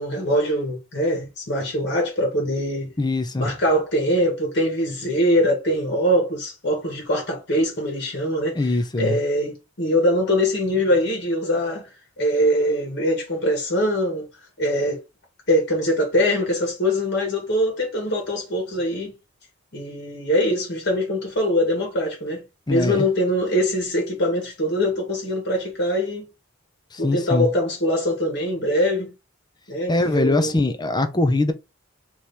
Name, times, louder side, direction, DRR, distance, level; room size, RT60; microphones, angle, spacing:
voice 1, 0.0-2.9 3.4-8.6 9.0-11.9 12.2-14.3 14.6-15.0 15.5-19.1 19.7-22.4 22.7-26.3 27.0-29.1 29.7-30.5, equal, 55° left, 1.5 m, -23 dB
voice 2, 3.0-3.5 8.6-9.2 22.7-23.1 26.9-27.5 29.9-31.5, left 2 dB, 20° left, 0.6 m, -22 dB
3.4 x 3.0 x 4.1 m
head